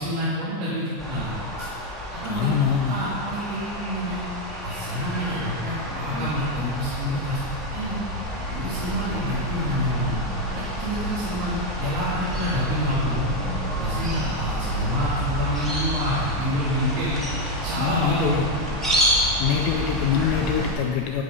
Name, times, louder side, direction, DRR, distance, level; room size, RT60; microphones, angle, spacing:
voice 1, 0.0-1.3 2.2-2.5 2.9-4.2 4.6-7.4 7.7-8.0 8.5-10.1 10.5-13.3 13.8-17.2 17.6-18.6, equal, 80° right, -10 dB, 4.7 m, -27 dB
sound 1, 1.0-20.7, equal, ahead, 1.3 m, -29 dB
voice 2, 2.2-3.1 17.8-18.5 19.4-21.2, left 7 dB, 80° left, 3 dB, 2.6 m, -24 dB
11.5 x 9.4 x 5.5 m, 2.5 s
omnidirectional pair, 5.3 m